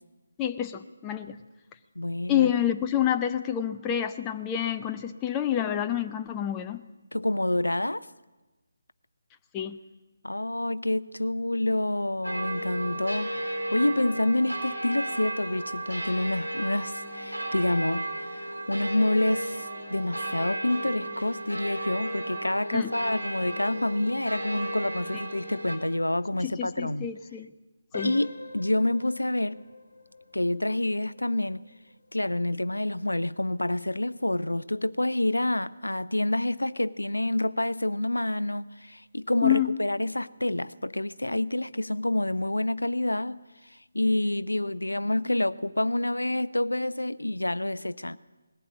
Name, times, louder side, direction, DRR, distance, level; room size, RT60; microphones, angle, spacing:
voice 1, 0.4-1.4 2.3-6.8 9.5-9.8 22.7-22.9 26.4-27.5 27.9-28.2 39.4-39.7, left 11 dB, 15° left, 0.6 m, -28 dB
voice 2, 2.0-2.5 7.1-8.1 10.2-18.1 18.3-27.1 28.0-29.6 30.3-31.6 32.1-48.2, left 1 dB, 80° left, 0.5 m, -28 dB
sound 1, 12.2-25.8, right 1 dB, 80° right, 4.0 m, -34 dB
sound 2, 27.9-38.6 39.0-39.2 39.8-39.9 40.4-40.5, left 2 dB, 55° left, 2.2 m, -47 dB
20.0 x 15.5 x 8.4 m
figure-of-eight pair, 150°, 0 cm